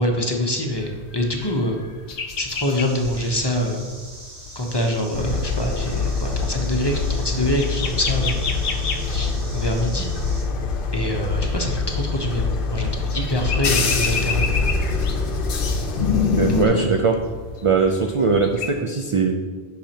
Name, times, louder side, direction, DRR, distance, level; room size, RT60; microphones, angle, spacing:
voice 1, 0.0-1.8 2.4-3.8 4.6-8.4 9.0-10.1 10.9-14.4 16.5-16.8, left 1 dB, 25° left, 1 dB, 0.7 m, -25 dB
sound 1, 0.7-18.7, left 5 dB, 85° left, 1.0 m, -34 dB
sound 2, 2.5-10.4, right 2 dB, 80° right, 1.7 m, -42 dB
sound 3, 5.1-16.7, left 4 dB, 60° left, 0.8 m, -24 dB
voice 2, 16.4-17.2 17.6-19.4, right 4 dB, 60° right, 4 dB, 0.3 m, -20 dB
10.0 x 5.8 x 2.8 m, 1.5 s
omnidirectional pair, 1.1 m